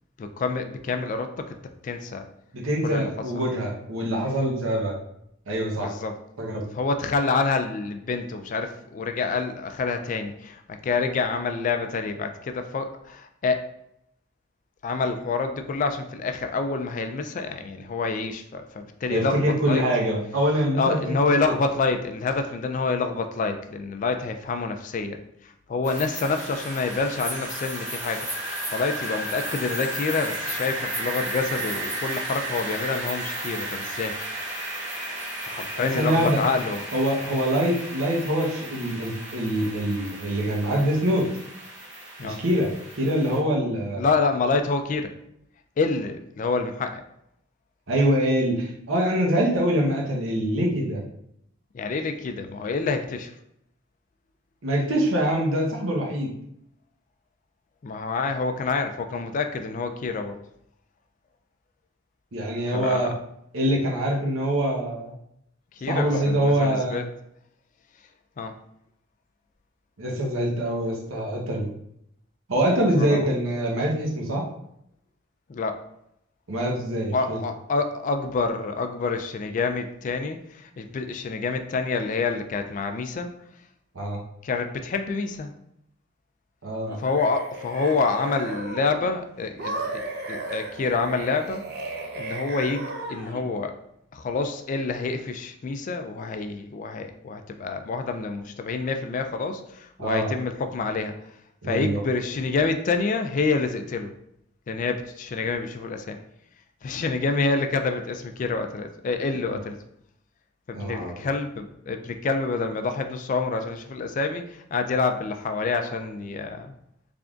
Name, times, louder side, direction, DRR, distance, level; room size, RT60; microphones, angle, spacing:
voice 1, 0.2-1.6 1.8-2.3 2.8-3.1 3.3-3.4 5.8-6.2 6.7-13.7 14.8-19.8 20.7-34.2 35.5-36.9 42.2-42.4 44.0-45.1 45.8-47.0 51.7-53.3 57.8-60.4 62.7-63.1 65.7-67.0 68.4-68.5 72.9-73.3 75.5-75.8 77.1-83.3 84.4-85.5 87.0-93.8 94.1-101.1 101.6-104.1 104.7-106.2 106.8-109.8 110.7-116.8, left 4 dB, 40° left, 7 dB, 0.3 m, -27 dB
voice 2, 2.5-4.9 5.5-5.9 6.4-6.6 19.1-21.5 35.8-36.4 36.9-41.3 42.2-42.7 43.0-44.0 47.9-51.0 54.6-56.3 62.3-63.1 63.5-65.1 65.9-67.0 70.0-71.7 72.5-74.4 76.5-77.4 83.9-84.2 86.6-87.0 100.0-100.3 101.6-102.0 109.4-109.6 110.7-111.2, right 1 dB, 85° right, -1 dB, 0.9 m, -24 dB
sound 1, 25.8-43.4, right 1 dB, 5° right, 1.3 m, -34 dB
sound 2, 86.9-89.1 89.6-93.5, right 2 dB, 50° right, 0.6 m, -35 dB
3.7 x 3.4 x 2.4 m, 0.75 s
head